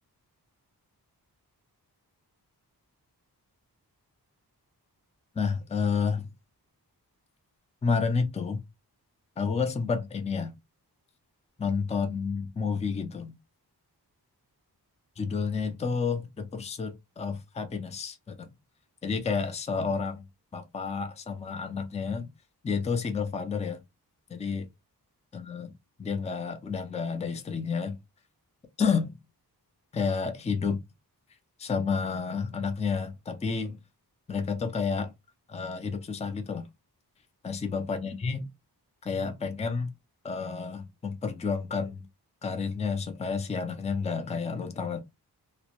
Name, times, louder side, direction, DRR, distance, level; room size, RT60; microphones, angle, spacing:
voice 1, 5.4-6.3 7.8-8.6 9.4-10.5 11.6-13.4 15.2-18.5 19.0-20.2 20.5-22.3 22.6-23.8 24.3-24.7 25.3-25.7 26.0-28.0 28.8-29.2 29.9-30.8 31.6-33.8 34.3-35.1 35.5-36.7 37.4-38.4 39.0-39.9 40.2-42.0 42.4-45.0, left 5 dB, 15° left, 0.4 m, -30 dB
2.1 x 2.1 x 2.8 m
cardioid pair, 50°, 40 cm